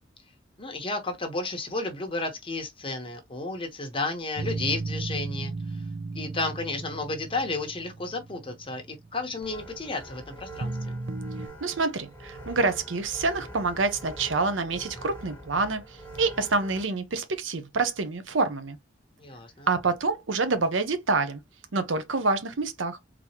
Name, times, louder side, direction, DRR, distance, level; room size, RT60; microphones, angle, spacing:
voice 1, 0.6-5.5 6.1-11.0 19.2-19.7, left 3 dB, 30° left, 1.1 m, -32 dB
sound 1, 4.4-9.5 10.6-11.5, right 3 dB, 60° right, 0.5 m, -35 dB
sound 2, 9.4-16.8, right 1 dB, 10° left, 1.4 m, -44 dB
voice 2, 11.6-15.8 16.2-18.8 19.7-21.4 21.7-23.0, right 3 dB, 85° right, 0.8 m, -27 dB
4.1 x 3.0 x 2.9 m
head